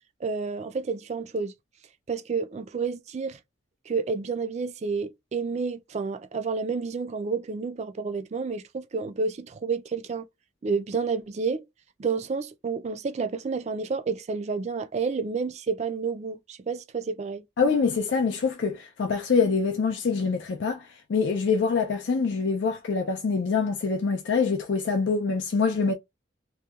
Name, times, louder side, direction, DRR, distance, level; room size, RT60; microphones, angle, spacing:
voice 1, 0.2-1.5 2.1-3.4 3.9-10.2 10.6-11.7 12.0-17.4, right 4 dB, 35° right, 0.3 m, -30 dB
voice 2, 17.6-20.8 21.1-25.9, left 5 dB, 75° left, 0.4 m, -25 dB
2.7 x 2.2 x 2.3 m
head